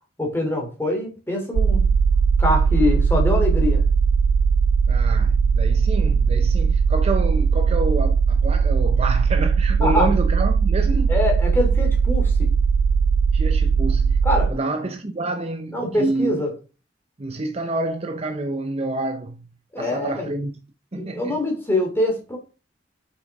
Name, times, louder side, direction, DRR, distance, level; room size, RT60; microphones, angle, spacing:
voice 1, 0.2-1.9 2.4-3.8 9.8-10.1 11.1-12.5 14.2-14.5 15.7-16.5 19.7-20.3 20.9-22.4, left 1 dB, 10° left, 2.8 m, -24 dB
sound 1, 1.5-14.5, right 5 dB, 85° right, 0.3 m, -19 dB
voice 2, 4.9-11.1 13.3-14.2 14.5-16.4 17.2-19.5 19.8-20.6 20.9-21.4, right 2 dB, 35° right, 0.6 m, -28 dB
8.0 x 6.0 x 3.5 m
head